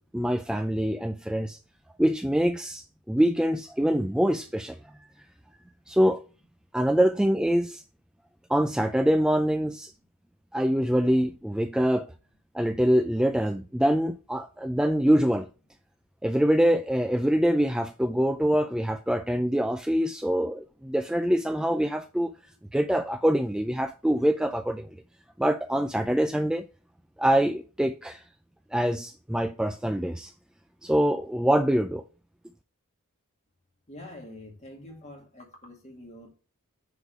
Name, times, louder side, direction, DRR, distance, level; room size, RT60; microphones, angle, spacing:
voice 1, 0.1-1.6 2.0-5.1 5.9-6.2 6.7-7.8 8.5-9.9 10.5-12.1 12.5-15.5 16.2-22.3 22.7-24.9 25.4-26.7 27.2-28.2 28.7-30.3 30.8-32.0, equal, 5° right, 0.3 m, -24 dB
voice 2, 33.9-36.3, left 1 dB, 30° left, 2.2 m, -45 dB
9.5 x 3.8 x 4.7 m
head